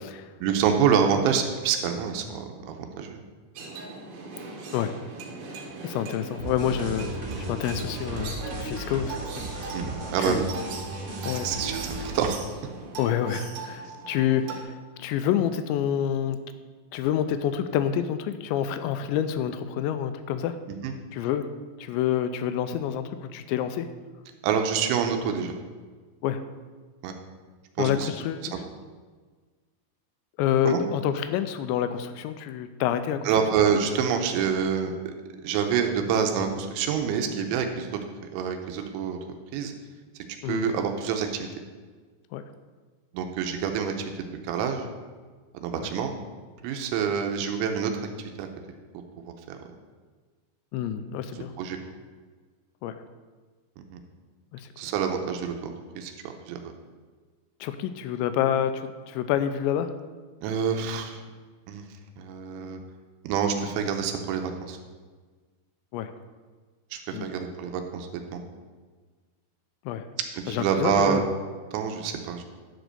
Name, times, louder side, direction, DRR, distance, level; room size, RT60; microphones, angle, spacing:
voice 1, 0.4-3.2 9.7-10.5 11.4-12.4 20.8-20.9 24.4-25.5 27.0-27.1 27.8-28.1 30.7-30.8 33.3-35.1 35.4-37.9 38.3-39.2 39.5-39.7 40.5-41.5 43.1-44.1 44.5-44.9 45.6-46.1 46.6-47.9 48.4-48.5 49.2-49.6 51.6-51.8 53.9-54.0 54.8-56.6 60.4-61.2 61.7-61.9 62.2-62.8 63.2-64.8 66.9-68.4 70.5-71.2 71.7-72.4, right 7 dB, 85° right, 5 dB, 3.1 m, -27 dB
sound 1, 3.6-14.6, right 3 dB, 65° right, 2.9 m, -39 dB
voice 2, 5.8-9.8 10.2-10.4 11.2-11.5 13.0-16.4 16.9-20.6 21.1-21.5 21.8-23.9 26.2-26.4 27.8-28.7 30.4-33.3 40.4-40.7 42.3-42.4 45.8-45.9 50.7-51.6 52.8-53.0 54.5-54.7 57.6-59.9 65.9-66.1 67.1-67.3 69.9-70.1 70.5-71.3, left 9 dB, 85° left, 10 dB, 2.6 m, -28 dB
sound 2, 6.4-12.3, right 2 dB, 45° right, 2.1 m, -35 dB
10.5 x 5.1 x 6.6 m, 1.4 s
omnidirectional pair, 5.6 m